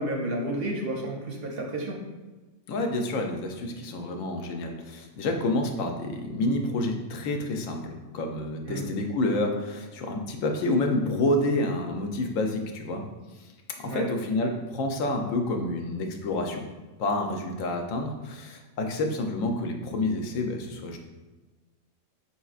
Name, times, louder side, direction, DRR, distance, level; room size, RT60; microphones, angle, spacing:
voice 1, 0.0-2.0 8.7-8.9 13.8-14.1, right 1 dB, 60° right, 0 dB, 0.7 m, -31 dB
voice 2, 2.7-13.0 13.4-13.5 13.8-16.6 17.0-21.0, left 2 dB, 85° left, 3 dB, 1.0 m, -28 dB
4.4 x 4.2 x 2.4 m, 1.2 s
omnidirectional pair, 1.3 m